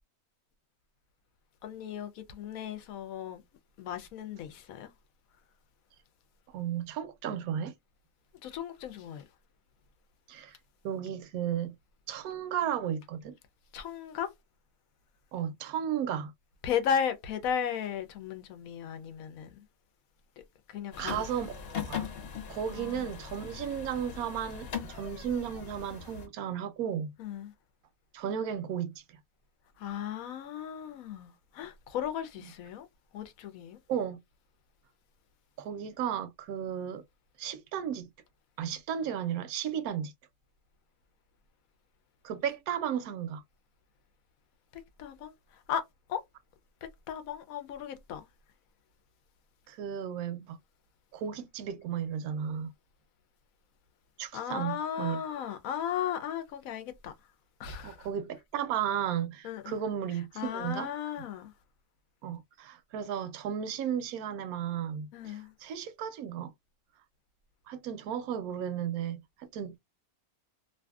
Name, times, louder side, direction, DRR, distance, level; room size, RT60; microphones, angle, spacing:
voice 1, 1.6-3.4 3.8-4.9 8.4-9.3 13.7-14.3 16.6-19.7 20.7-21.3 22.7-23.1 27.2-27.5 29.8-32.9 33.1-33.8 44.7-45.8 46.1-46.2 46.8-48.3 54.3-57.3 57.6-58.1 59.4-61.5 65.1-65.5, left 8 dB, 75° left, 1.0 m, -36 dB
voice 2, 6.5-7.7 10.3-10.6 10.8-11.7 12.1-13.4 15.3-16.3 21.0-21.6 21.9-22.0 22.5-27.1 28.1-29.2 33.9-34.2 35.6-37.0 37.4-38.1 38.6-40.1 42.2-43.4 49.7-50.6 51.1-52.7 54.2-55.2 57.8-60.9 62.2-66.5 67.7-69.8, right 9 dB, 80° right, 1.0 m, -34 dB
sound 1, 20.9-26.3, left 7 dB, 50° left, 0.9 m, -40 dB
2.6 x 2.5 x 2.3 m
omnidirectional pair, 1.5 m